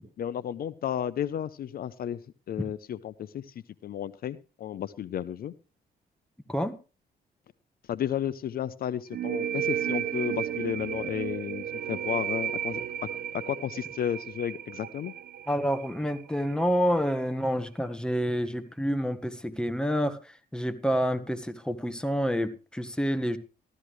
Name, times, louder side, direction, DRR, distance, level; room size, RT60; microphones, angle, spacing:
voice 1, 0.2-2.2 2.5-3.5 3.8-5.5 7.9-12.8 13.5-15.1, left 10 dB, 60° left, 16 dB, 0.7 m, -33 dB
sound 1, 9.1-16.5, right 10 dB, 65° right, 0.8 m, -33 dB
voice 2, 15.5-23.4, equal, 5° left, 10 dB, 1.5 m, -28 dB
15.0 x 13.5 x 3.2 m, 0.33 s
cardioid pair, 100°, 17 cm